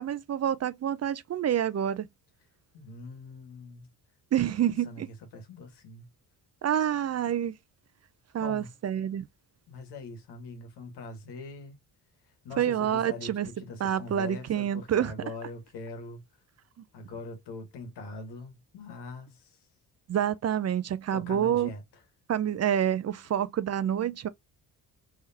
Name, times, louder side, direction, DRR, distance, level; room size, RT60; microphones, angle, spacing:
voice 1, 0.0-2.1 4.3-5.1 6.6-7.5 8.3-9.3 12.6-13.5 13.8-15.1 20.1-21.7 22.3-24.3, right 10 dB, 40° right, 0.4 m, -27 dB
voice 2, 2.7-3.9 4.6-6.1 8.4-8.7 9.7-11.8 12.4-16.2 16.9-19.6 21.1-21.8, left 3 dB, 80° left, 1.6 m, -42 dB
3.5 x 3.4 x 2.7 m
cardioid pair, 80°, 40 cm